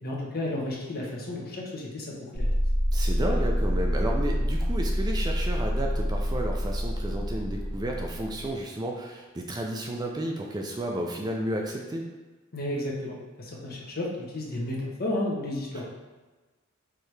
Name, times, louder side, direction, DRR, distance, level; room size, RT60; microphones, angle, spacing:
voice 1, 0.0-2.5 12.5-15.8, left 1 dB, 45° left, -2 dB, 0.9 m, -32 dB
sound 1, 2.3-8.5, equal, 20° left, 1.3 m, -27 dB
voice 2, 2.9-12.0 15.7-15.8, right 1 dB, 20° right, 1 dB, 0.4 m, -32 dB
4.6 x 3.3 x 3.2 m, 1.3 s
head